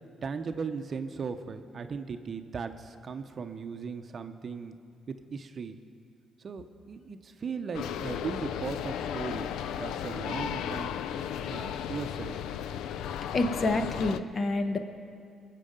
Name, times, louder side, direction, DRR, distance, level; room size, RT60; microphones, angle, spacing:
voice 1, 0.2-4.7 5.1-5.8 6.4-10.9 11.5-12.4, right 5 dB, 45° right, 8 dB, 0.7 m, -37 dB
sound 1, 7.7-14.2, left 9 dB, 85° left, 0.4 m, -35 dB
voice 2, 13.3-14.8, left 2 dB, 35° left, 7 dB, 1.0 m, -28 dB
20.5 x 7.5 x 5.2 m, 2.3 s
cardioid pair, 90°, 0 cm